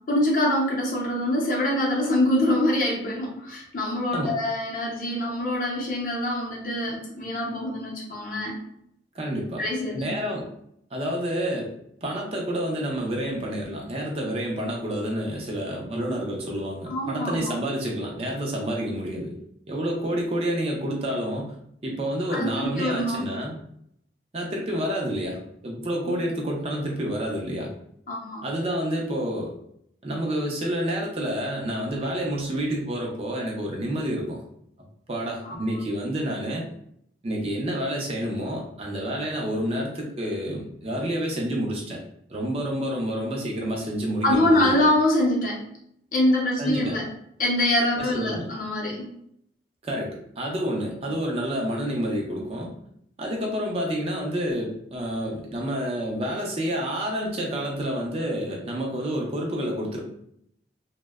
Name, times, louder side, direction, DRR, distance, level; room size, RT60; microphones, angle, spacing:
voice 1, 0.1-8.6 9.6-10.0 16.9-17.5 22.3-23.2 26.1-26.2 28.1-28.4 35.4-35.6 44.2-45.7 46.1-47.1 47.4-49.1, left 1 dB, 50° left, -2 dB, 0.6 m, -24 dB
voice 2, 9.1-9.6 9.9-10.5 10.9-11.7 12.0-19.3 19.7-21.5 21.8-23.5 24.3-27.7 28.4-29.5 30.0-34.4 35.1-36.7 37.2-42.0 42.3-44.7 46.6-47.0 48.0-48.5 49.8-52.7 53.2-60.0, equal, 35° right, -1 dB, 0.4 m, -29 dB
2.6 x 2.1 x 2.2 m, 0.72 s
head